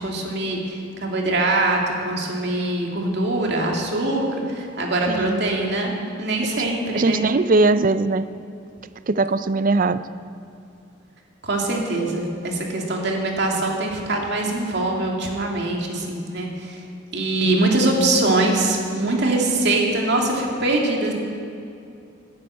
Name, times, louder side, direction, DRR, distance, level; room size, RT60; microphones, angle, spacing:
voice 1, 0.0-7.2 11.4-16.8 17.1-21.1, right 2 dB, 60° right, 0 dB, 2.5 m, -23 dB
voice 2, 5.1-5.4 6.4-6.6 6.9-8.3 9.1-10.1, right 3 dB, 45° right, 13 dB, 0.5 m, -20 dB
12.5 x 9.7 x 8.7 m, 2.5 s
head